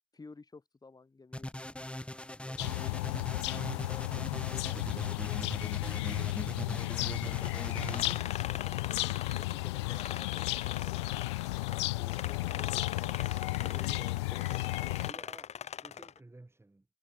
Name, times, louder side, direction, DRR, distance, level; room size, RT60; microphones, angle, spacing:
voice 1, 0.1-1.5 3.5-5.4 6.6-6.9 7.2-11.1 11.9-14.8, left 3 dB, 30° left, 2.9 m, -53 dB
sound 1, 1.3-8.2, left 1 dB, 10° left, 2.6 m, -40 dB
voice 2, 2.3-3.0 15.0-16.9, right 2 dB, 20° right, 6.7 m, -55 dB
sound 2, 2.6-15.1, left 22 dB, 90° left, 0.4 m, -34 dB
sound 3, 7.3-11.8 12.1-16.2, left 8 dB, 50° left, 1.4 m, -42 dB
hypercardioid pair, 45°, 14 cm